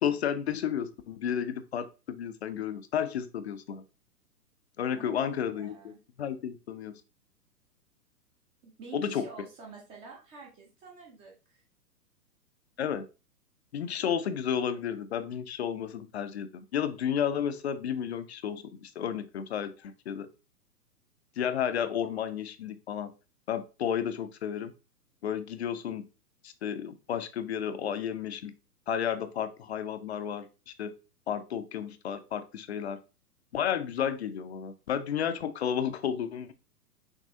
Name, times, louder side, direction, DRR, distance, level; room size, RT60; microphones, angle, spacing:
voice 1, 0.0-3.8 4.8-5.8 6.2-6.9 8.9-9.2 12.8-13.0 13.7-20.3 21.4-23.1 23.5-24.7 25.2-26.0 26.4-28.5 28.9-30.9 31.3-33.0 33.5-36.5, left 8 dB, 45° left, 11 dB, 0.5 m, -32 dB
voice 2, 4.9-6.0 8.6-11.6, right 3 dB, 10° right, 0 dB, 0.6 m, -48 dB
6.2 x 3.0 x 2.6 m, 0.32 s
figure-of-eight pair, 115°, 49 cm